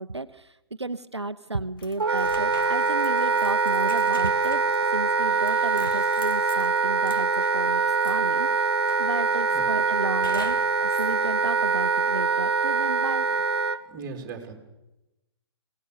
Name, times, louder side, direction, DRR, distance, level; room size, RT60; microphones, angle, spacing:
voice 1, 0.0-4.6 4.9-13.3, right 2 dB, 85° right, 11 dB, 0.8 m, -33 dB
sound 1, 1.8-8.5 8.9-9.5 10.2-11.2, left 5 dB, 55° left, 1.6 m, -45 dB
Wind instrument woodwind instrument, 2.0-13.8, right 4 dB, 60° right, 1.5 m, -24 dB
voice 2, 13.8-14.5, right 5 dB, 20° right, 2 dB, 3.3 m, -38 dB
22.5 x 18.0 x 6.9 m, 0.97 s
figure-of-eight pair, 130°, 14 cm